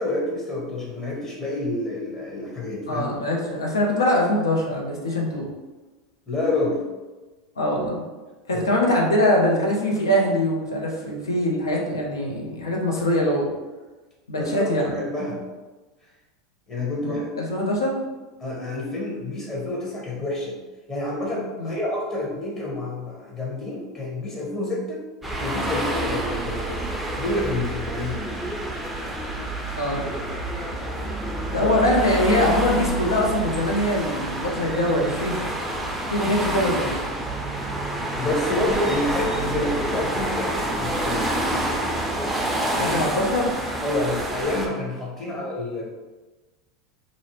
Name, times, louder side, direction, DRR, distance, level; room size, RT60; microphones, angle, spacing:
voice 1, 0.0-3.0 6.3-6.8 8.5-8.7 14.4-15.4 16.7-17.3 18.4-20.6 20.9-25.1 25.4-26.9 27.1-28.4 31.6-31.7 38.1-41.3 42.8-43.2 43.8-45.9, left 2 dB, 25° left, -4 dB, 0.9 m, -28 dB
voice 2, 2.9-5.5 7.6-8.0 8.5-13.5 14.3-14.9 17.0-18.0 21.6-21.7 29.8-30.1 31.5-35.5 36.1-37.0 42.8-43.5 45.2-45.4, left 1 dB, 85° left, -1 dB, 0.5 m, -23 dB
sound 1, 25.2-44.7, right 1 dB, 5° right, 0.4 m, -28 dB
2.5 x 2.0 x 2.9 m, 1.2 s
hypercardioid pair, 85°, 2 cm